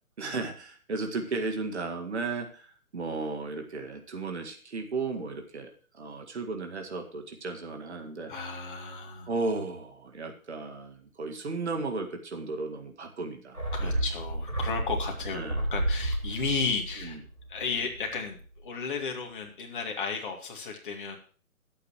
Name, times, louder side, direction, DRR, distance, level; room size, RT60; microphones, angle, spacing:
voice 1, 0.2-8.3 9.3-14.0 15.3-15.6 17.0-17.2, right 3 dB, 50° right, 4 dB, 2.0 m, -35 dB
voice 2, 8.3-9.3 13.7-17.2 17.5-21.2, left 5 dB, 35° left, 2 dB, 2.6 m, -34 dB
sound 1, 13.5-18.2 18.4-18.5, right 1 dB, 90° right, 5.4 m, -32 dB
21.5 x 8.5 x 3.1 m, 0.40 s
figure-of-eight pair, 140°, 43 cm